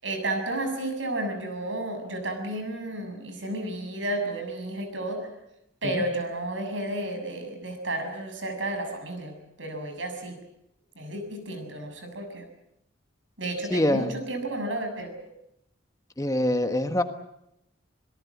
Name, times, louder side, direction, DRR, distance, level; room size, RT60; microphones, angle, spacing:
voice 1, 0.0-5.3 5.8-9.3 9.6-10.4 10.9-12.4 13.4-15.3, right 1 dB, 85° right, 6 dB, 6.8 m, -32 dB
voice 2, 13.7-14.1 16.2-17.0, left 1 dB, 20° left, 7 dB, 1.4 m, -24 dB
26.5 x 18.0 x 8.6 m, 0.81 s
head